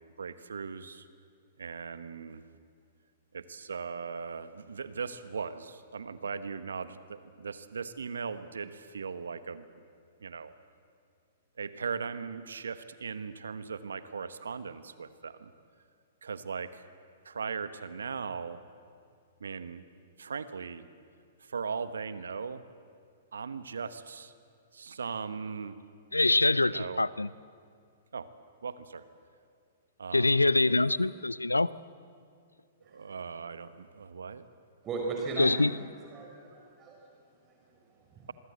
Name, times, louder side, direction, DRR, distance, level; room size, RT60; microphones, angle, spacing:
voice 1, 0.2-1.1 1.6-2.4 3.3-9.8 10.2-10.5 11.6-15.5 16.2-16.9 17.2-18.6 19.4-19.9 20.2-20.9 21.4-22.6 23.3-24.3 24.7-25.7 26.6-27.1 28.1-28.3 28.6-29.0 30.0-30.8 32.8-34.5, right 5 dB, 70° right, 13 dB, 1.2 m, -38 dB
voice 2, 26.1-27.3 30.1-31.7 35.4-35.7, left 2 dB, 90° left, 20 dB, 0.6 m, -24 dB
voice 3, 32.8-33.1 34.8-35.7 36.1-38.3, right 3 dB, 25° right, 0 dB, 4.8 m, -39 dB
26.5 x 23.0 x 7.9 m, 2.2 s
figure-of-eight pair, 110°, 0 cm